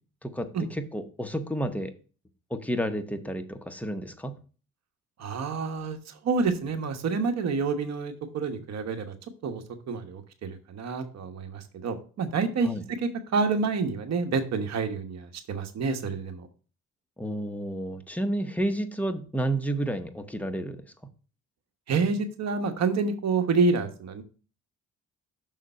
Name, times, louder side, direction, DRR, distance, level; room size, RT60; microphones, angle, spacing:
voice 1, 0.2-1.9 2.5-4.3 12.6-12.8 17.2-20.8, right 1 dB, 5° left, 7 dB, 0.8 m, -31 dB
voice 2, 5.2-9.1 9.4-16.5 21.9-24.2, right 4 dB, 60° right, 7 dB, 1.2 m, -28 dB
6.5 x 3.7 x 5.5 m, 0.38 s
cardioid pair, 90°, 30 cm